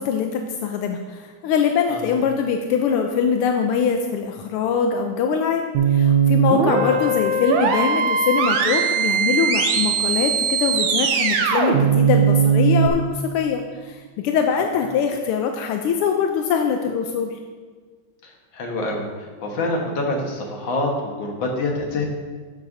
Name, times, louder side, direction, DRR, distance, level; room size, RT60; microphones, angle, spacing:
voice 1, 0.0-17.4, left 6 dB, 85° left, 4 dB, 1.5 m, -23 dB
sound 1, 5.7-12.9, right 6 dB, 70° right, 1.4 m, -19 dB
voice 2, 18.2-22.1, left 2 dB, 60° left, 0 dB, 2.0 m, -26 dB
12.5 x 6.7 x 2.6 m, 1.5 s
omnidirectional pair, 2.4 m